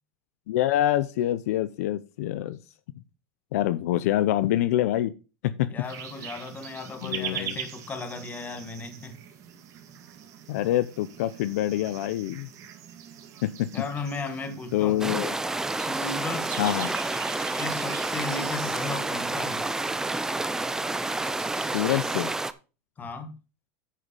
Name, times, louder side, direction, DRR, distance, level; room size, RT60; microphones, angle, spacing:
voice 1, 0.5-2.6 3.5-5.1 5.4-5.7 7.0-7.6 10.5-12.5 13.4-13.7 14.7-15.3 16.6-16.9 21.7-22.3, left 13 dB, 75° left, 0.7 m, -26 dB
voice 2, 5.7-9.2 13.7-15.3 15.9-16.6 17.4-19.7 23.0-23.4, left 3 dB, 20° left, 1.5 m, -36 dB
sound 1, 5.8-22.4, right 9 dB, 40° right, 2.0 m, -42 dB
sound 2, 15.0-22.5, right 2 dB, 5° right, 0.5 m, -29 dB
10.0 x 5.1 x 5.3 m
supercardioid pair, 130°, 8 cm